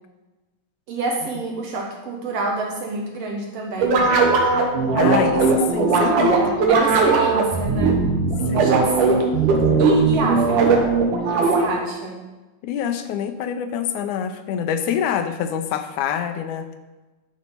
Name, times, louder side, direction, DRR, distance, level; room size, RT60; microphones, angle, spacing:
voice 1, 0.9-4.0 5.4-5.7 5.9-8.0 8.4-9.2 9.8-10.9 11.3-12.2, right 2 dB, 65° right, 0 dB, 1.8 m, -28 dB
sound 1, 3.8-11.9, right 4 dB, 85° right, 2.6 m, -18 dB
voice 2, 5.0-6.5 8.5-8.8 12.6-16.7, left 8 dB, 80° left, 8 dB, 2.0 m, -26 dB
11.5 x 4.2 x 5.3 m, 1.1 s
omnidirectional pair, 3.6 m